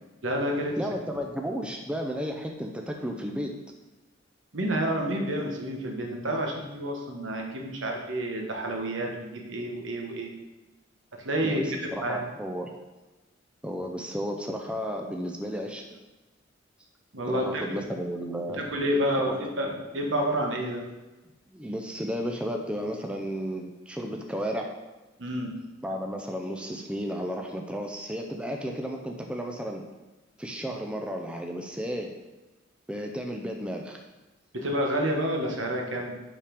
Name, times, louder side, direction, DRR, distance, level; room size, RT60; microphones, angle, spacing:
voice 1, 0.2-0.7 4.5-10.3 11.2-11.6 12.0-12.2 17.1-17.8 18.6-20.8 25.2-25.5 34.5-36.1, right 1 dB, 75° right, 1 dB, 1.2 m, -29 dB
voice 2, 0.8-3.5 11.4-12.7 13.6-15.8 17.3-18.7 19.2-19.4 21.5-24.7 25.8-29.8 30.4-32.1 32.9-34.0, equal, 5° right, 2 dB, 0.5 m, -33 dB
5.6 x 5.0 x 5.1 m, 1.1 s
head